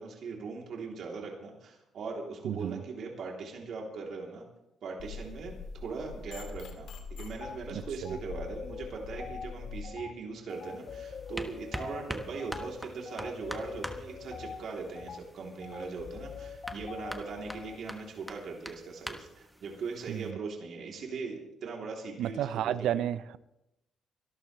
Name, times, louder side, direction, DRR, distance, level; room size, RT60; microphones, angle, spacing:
voice 1, 0.0-4.4 4.8-22.7, right 4 dB, 60° right, -1 dB, 3.3 m, -40 dB
voice 2, 2.4-2.8 7.7-8.2 20.1-20.4 22.2-23.4, right 11 dB, 80° right, 16 dB, 0.5 m, -32 dB
sound 1, 5.0-9.8, left 4 dB, 70° left, 2.0 m, -44 dB
sound 2, 7.4-7.6 8.0-17.8, left 6 dB, 45° left, 0.9 m, -44 dB
sound 3, 10.5-20.3, equal, ahead, 1.4 m, -45 dB
24.5 x 12.5 x 3.3 m, 0.91 s
cardioid pair, 115°, 0 cm